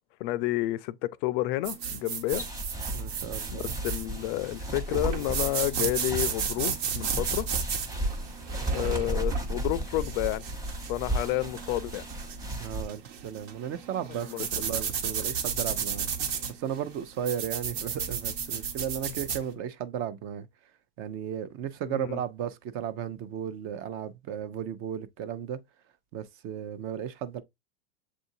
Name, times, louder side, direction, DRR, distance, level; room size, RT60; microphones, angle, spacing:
voice 1, 0.2-2.4 3.6-7.5 8.7-10.5 10.9-12.0 14.3-14.5 21.9-22.2, left 16 dB, 55° left, 0.4 m, -30 dB
sound 1, 1.6-19.4, right 7 dB, 70° right, 1.3 m, -34 dB
sound 2, 2.3-12.8, right 1 dB, 10° right, 1.1 m, -34 dB
voice 2, 2.9-3.7 8.2-8.3 9.0-9.1 12.5-16.1 16.5-20.5 21.0-25.6 26.1-27.4, right 9 dB, 40° right, 0.6 m, -35 dB
7.3 x 2.6 x 2.7 m
supercardioid pair, 135°, 32 cm